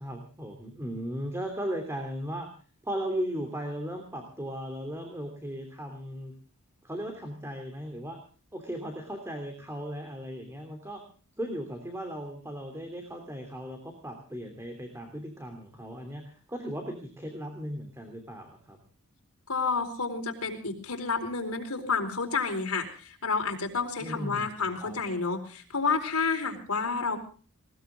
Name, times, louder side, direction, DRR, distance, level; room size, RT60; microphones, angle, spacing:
voice 1, 0.0-2.5 2.8-6.3 6.8-8.2 8.5-11.0 11.4-18.8 24.0-25.0, equal, 10° right, 4 dB, 3.1 m, -37 dB
voice 2, 19.5-27.2, left 4 dB, 85° left, 3 dB, 4.3 m, -30 dB
20.0 x 19.5 x 3.7 m, 0.40 s
head